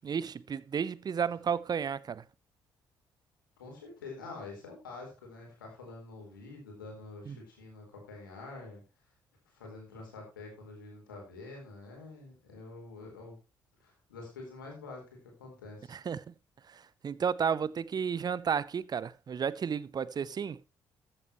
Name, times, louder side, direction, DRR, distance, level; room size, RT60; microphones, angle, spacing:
voice 1, 0.0-2.2 7.3-7.4 15.9-16.3 16.7-20.6, right 7 dB, 40° right, 0.7 m, -32 dB
voice 2, 3.6-8.8 9.5-13.4 13.8-16.0, left 3 dB, 85° left, 4.4 m, -47 dB
14.5 x 8.8 x 3.1 m
figure-of-eight pair, 45°, 11 cm